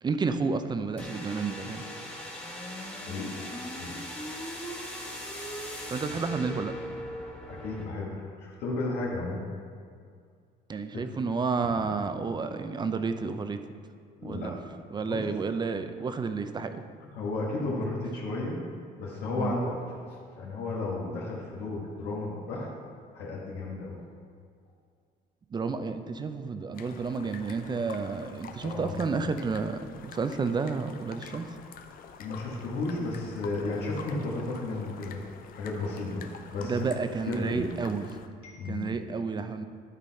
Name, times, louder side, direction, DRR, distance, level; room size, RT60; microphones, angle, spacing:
voice 1, 0.0-1.8 5.9-6.7 10.7-13.6 14.2-14.6 14.9-16.8 19.4-19.6 25.5-31.5 36.6-38.1 38.7-39.7, right 4 dB, 25° right, 9 dB, 0.5 m, -31 dB
sound 1, 1.0-7.9, equal, 5° left, 1.3 m, -39 dB
voice 2, 7.4-9.5 10.9-11.0 11.6-11.8 14.2-14.5 14.9-15.3 17.1-18.6 18.9-22.7 23.1-24.0 28.6-28.9 32.2-35.2 35.5-36.8 37.2-37.7 38.4-38.8, left 2 dB, 80° left, -4 dB, 1.7 m, -33 dB
sound 2, 26.7-38.3, left 6 dB, 60° left, 0.6 m, -48 dB
11.5 x 4.0 x 4.3 m, 2.1 s
cardioid pair, 110°, 17 cm